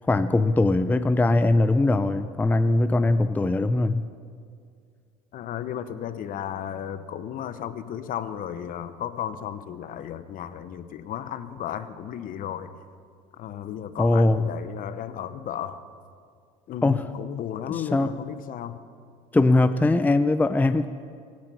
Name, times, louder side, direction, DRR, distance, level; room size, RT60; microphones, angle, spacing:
voice 1, 0.1-4.1 14.0-14.5 16.8-17.0 17.7-18.1 19.3-20.9, left 2 dB, 10° left, 11 dB, 0.5 m, -21 dB
voice 2, 5.3-12.7 13.4-15.8 16.7-18.8, left 10 dB, 50° left, 12 dB, 1.0 m, -34 dB
24.5 x 9.6 x 5.6 m, 2.2 s
supercardioid pair, 85°, 18 cm